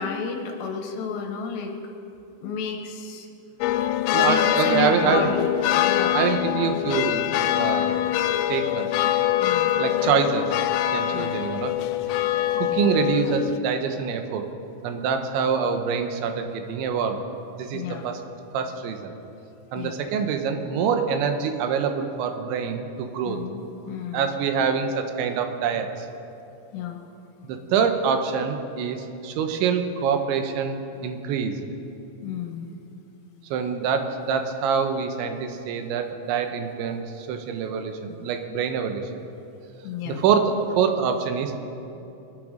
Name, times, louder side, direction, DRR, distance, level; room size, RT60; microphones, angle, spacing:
voice 1, 0.0-1.7 2.4-3.3 4.2-5.5 5.8-6.2 9.4-9.8 11.1-11.4 17.7-18.1 19.7-20.0 23.3-24.3 26.7-27.0 32.2-32.7 39.8-40.2, left 6 dB, 75° left, 3 dB, 3.2 m, -31 dB
sound 1, 3.6-13.6, left 12 dB, 90° left, 2.9 m, -24 dB
voice 2, 4.1-5.3 6.1-7.2 7.6-8.0 8.5-8.9 9.8-10.5 10.9-11.7 12.6-14.5 14.8-17.2 17.6-18.2 18.5-19.1 19.7-23.4 24.1-25.9 27.4-29.0 29.2-30.8 31.0-31.6 33.5-39.0 40.1-41.6, right 6 dB, 90° right, 6 dB, 3.3 m, -25 dB
21.5 x 10.5 x 5.1 m, 2.9 s
omnidirectional pair, 5.1 m